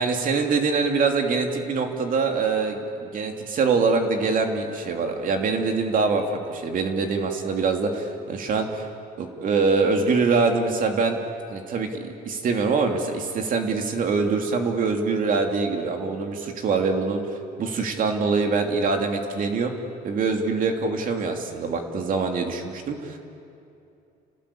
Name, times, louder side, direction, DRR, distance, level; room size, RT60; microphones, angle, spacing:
voice 1, 0.0-8.8 9.2-11.2 11.5-17.2 17.6-19.7 20.0-23.2, right 4 dB, 55° right, 3 dB, 2.9 m, -24 dB
29.5 x 18.5 x 8.6 m, 2.6 s
cardioid pair, 110°, 17 cm